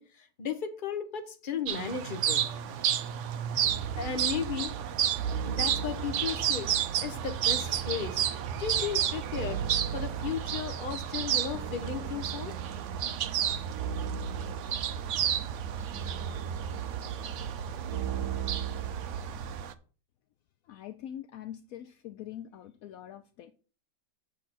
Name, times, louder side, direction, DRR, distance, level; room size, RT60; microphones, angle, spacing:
voice 1, 0.0-2.4 4.0-4.7 5.5-8.2 8.6-9.6 9.9-12.5, left 7 dB, 35° left, 0.9 m, -35 dB
sound 1, 1.7-19.7, right 10 dB, 90° right, 0.6 m, -32 dB
sound 2, 3.6-19.6, right 7 dB, 65° right, 1.2 m, -37 dB
voice 2, 20.6-23.5, left 11 dB, 75° left, 0.8 m, -43 dB
7.3 x 6.7 x 4.2 m
omnidirectional pair, 2.0 m